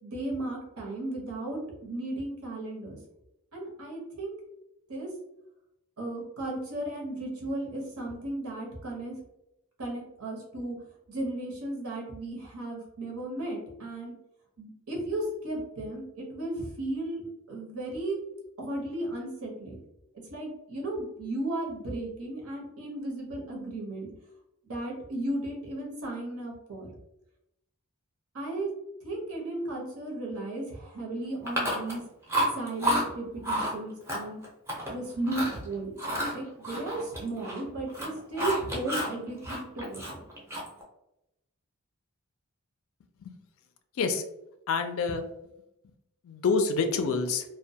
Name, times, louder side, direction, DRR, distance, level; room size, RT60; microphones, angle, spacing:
voice 1, 0.0-3.0 3.5-4.4 4.9-5.1 6.0-9.1 9.8-10.8 11.1-14.1 14.6-18.2 18.6-19.7 20.3-24.1 24.6-26.9 28.3-28.7 29.0-32.0 32.5-34.4 34.9-35.9 36.3-40.2, right 2 dB, 75° right, -1 dB, 0.8 m, -35 dB
Chewing mastication, 31.5-32.0 32.3-33.0 33.4-33.7 34.1-34.9 35.2-35.6 36.0-37.6 37.9-39.1 39.4-40.8, equal, 10° right, 0.5 m, -30 dB
voice 2, 44.7-45.2 46.2-47.4, left 4 dB, 65° left, 7 dB, 0.3 m, -27 dB
2.1 x 2.1 x 2.7 m, 0.86 s
head